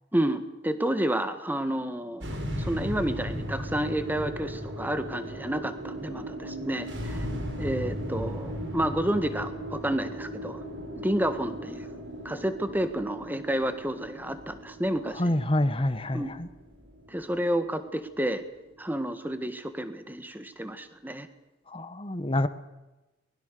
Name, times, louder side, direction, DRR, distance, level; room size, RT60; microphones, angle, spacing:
voice 1, 0.1-2.3 2.6-7.3 7.6-10.6 10.9-12.0 12.2-15.4 16.1-16.3 17.1-18.4 18.8-21.3, right 1 dB, 10° right, 9 dB, 1.6 m, -30 dB
sound 1, 2.2-18.6, equal, 70° right, 5.1 m, -37 dB
voice 2, 15.2-16.5 21.7-22.5, left 1 dB, 30° left, 12 dB, 1.2 m, -27 dB
23.5 x 20.5 x 6.8 m, 1.0 s
head